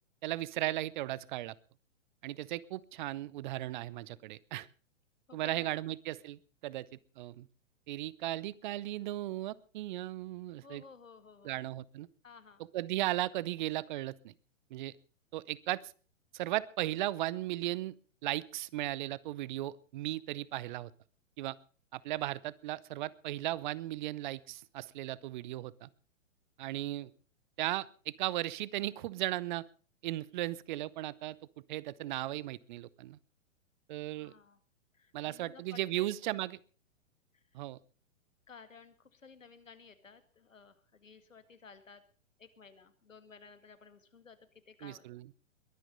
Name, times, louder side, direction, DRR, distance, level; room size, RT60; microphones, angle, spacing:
voice 1, 0.2-1.5 2.2-4.7 5.3-6.9 7.2-7.5 7.9-10.8 11.4-12.1 12.7-14.3 14.7-14.9 15.3-15.8 16.3-17.9 18.2-20.9 21.4-21.6 21.9-25.9 26.6-27.1 27.6-29.6 30.0-31.4 31.7-33.2 33.9-34.3 35.1-36.6 37.5-37.8 44.8-45.3, right 15 dB, 40° right, 22 dB, 0.8 m, -36 dB
voice 2, 5.3-5.7 10.6-11.6 12.2-12.6 34.1-34.6 34.9-36.1 37.3-37.6 38.5-42.0 42.4-45.2, left 5 dB, 80° left, 10 dB, 2.1 m, -55 dB
22.0 x 9.0 x 5.4 m, 0.39 s
figure-of-eight pair, 115°, 38 cm